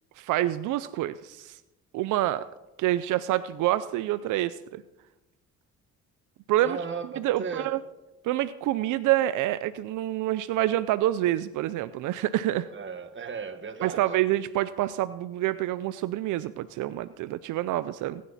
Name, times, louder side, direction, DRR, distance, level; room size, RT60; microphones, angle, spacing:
voice 1, 0.2-1.6 1.9-2.5 2.8-4.8 6.5-6.8 7.2-7.8 8.2-12.7 13.8-18.2, right 14 dB, 85° right, 14 dB, 0.6 m, -27 dB
voice 2, 6.6-7.1 7.4-7.8 12.7-14.0, right 6 dB, 40° right, 8 dB, 1.7 m, -35 dB
21.5 x 10.5 x 4.2 m, 0.97 s
cardioid pair, 90°, 30 cm